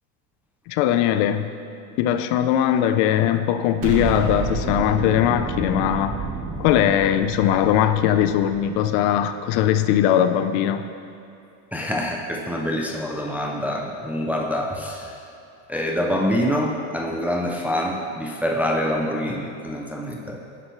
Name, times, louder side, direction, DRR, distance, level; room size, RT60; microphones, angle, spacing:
voice 1, 0.7-1.5 2.0-6.2 6.6-10.8, left 10 dB, 70° left, 10 dB, 0.6 m, -20 dB
Explosion, 3.8-9.0, right 4 dB, 50° right, 1.4 m, -30 dB
voice 2, 11.7-15.2 15.7-20.4, equal, 5° right, -1 dB, 0.4 m, -25 dB
9.9 x 6.6 x 3.0 m, 2.8 s
cardioid pair, 135°, 41 cm